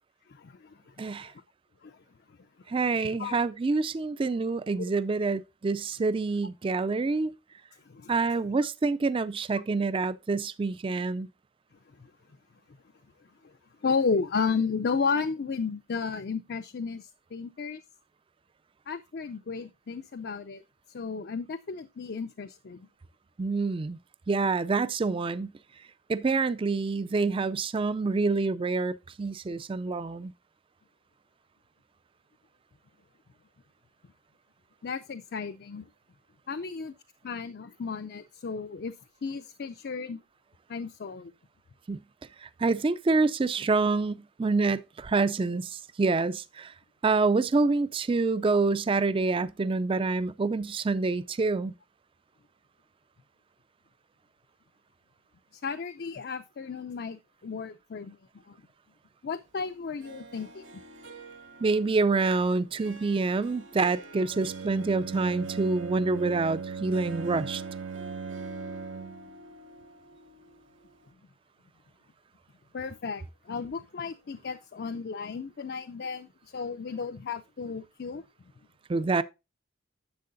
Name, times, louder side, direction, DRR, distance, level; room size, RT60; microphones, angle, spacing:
voice 1, 0.3-1.3 1.8-2.0 3.2-3.4 4.8-4.9 7.8-8.4 12.0-12.1 13.4-13.5 13.8-17.8 18.9-20.6 20.9-22.9 34.8-35.8 36.5-36.9 37.2-38.9 39.2-40.2 40.7-41.3 55.5-58.2 58.5-58.6 59.2-60.6 72.7-78.2, left 5 dB, 50° left, 0.5 m, -33 dB
voice 2, 1.0-1.3 2.7-7.3 8.1-11.3 23.4-24.0 24.3-25.5 26.1-30.3 41.9-42.0 42.6-45.7 46.0-46.7 47.0-51.7 61.6-67.6 78.9-79.2, right 3 dB, 25° right, 0.4 m, -27 dB
Harp, 60.0-71.1, right 2 dB, 70° right, 1.4 m, -49 dB
Bowed string instrument, 64.2-69.3, right 5 dB, 90° right, 0.7 m, -38 dB
10.5 x 7.5 x 2.6 m
head